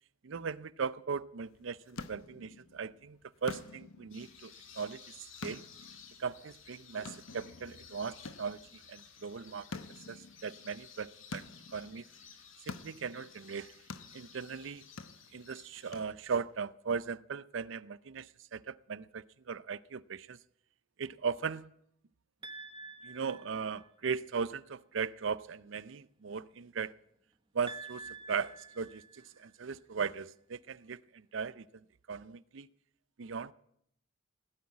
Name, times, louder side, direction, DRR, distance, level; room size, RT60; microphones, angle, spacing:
voice 1, 0.2-5.6 6.2-9.8 10.1-11.5 11.7-12.1 12.6-13.8 14.1-14.8 15.3-20.4 21.0-21.7 23.0-27.0 27.5-32.7 33.2-33.5, right 5 dB, 70° right, 0.5 m, -38 dB
sound 1, 1.4-16.6, left 4 dB, 90° left, 1.0 m, -50 dB
sound 2, 4.1-16.0, left 7 dB, 70° left, 2.5 m, -56 dB
sound 3, 22.4-24.1 27.7-29.7, right 4 dB, 25° right, 1.0 m, -48 dB
16.5 x 8.7 x 9.6 m
head